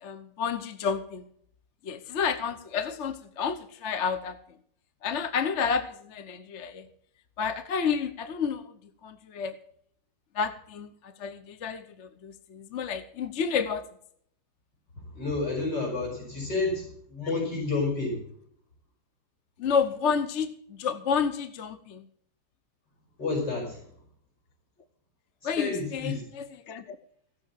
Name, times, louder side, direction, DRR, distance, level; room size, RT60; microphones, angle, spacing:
voice 1, 0.0-1.2 1.8-4.4 5.0-6.9 7.4-8.7 9.0-9.5 10.3-13.8 19.6-22.1 25.4-27.0, left 6 dB, 50° left, 10 dB, 1.1 m, -30 dB
voice 2, 15.1-18.2 23.2-23.9 25.6-26.2, left 3 dB, 70° left, -2 dB, 6.6 m, -30 dB
17.0 x 6.7 x 7.4 m, 0.63 s
omnidirectional pair, 1.9 m